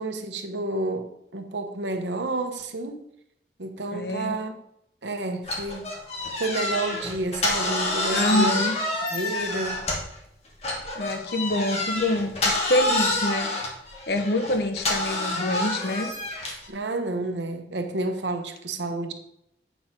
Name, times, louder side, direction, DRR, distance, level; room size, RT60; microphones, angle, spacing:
voice 1, 0.0-3.1 3.6-4.5 5.0-5.8 6.4-8.6 9.1-9.8 16.7-19.1, right 2 dB, 90° right, 1.0 m, -30 dB
voice 2, 3.9-4.4 8.1-8.8 11.0-13.5 14.1-16.1, left 1 dB, 65° left, 0.8 m, -26 dB
sound 1, 5.4-10.2 10.6-16.7, left 2 dB, 35° left, 1.5 m, -28 dB
8.1 x 4.5 x 5.8 m
head